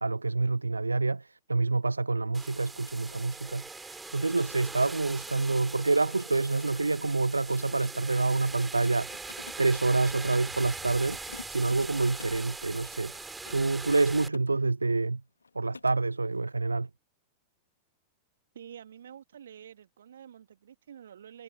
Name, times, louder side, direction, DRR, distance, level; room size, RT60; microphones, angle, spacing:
voice 1, 0.0-11.2 11.5-13.1 13.5-15.2 15.5-16.9, right 3 dB, 80° right, 0.5 m, -27 dB
sound 1, 2.3-14.3, right 3 dB, 10° right, 4.3 m, -41 dB
Mechanisms, 6.6-10.6 11.0-12.5 13.1-14.5 14.8-15.1 15.4-16.0, left 4 dB, 80° left, 1.8 m, -49 dB
voice 2, 18.5-21.4, right 9 dB, 65° right, 2.7 m, -48 dB
figure-of-eight pair, 90°, 0 cm